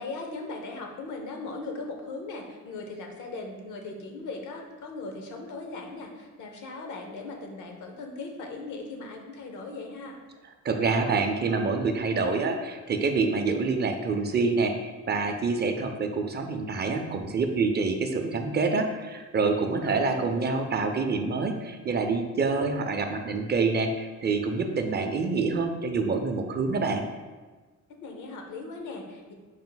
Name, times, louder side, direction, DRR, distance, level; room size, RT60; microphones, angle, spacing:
voice 1, 0.0-10.2 19.7-20.5 27.9-29.3, left 3 dB, 80° left, 2 dB, 0.8 m, -38 dB
voice 2, 10.6-27.0, right 4 dB, 35° right, 5 dB, 0.4 m, -27 dB
4.8 x 2.1 x 3.8 m, 1.3 s
cardioid pair, 90°, 30 cm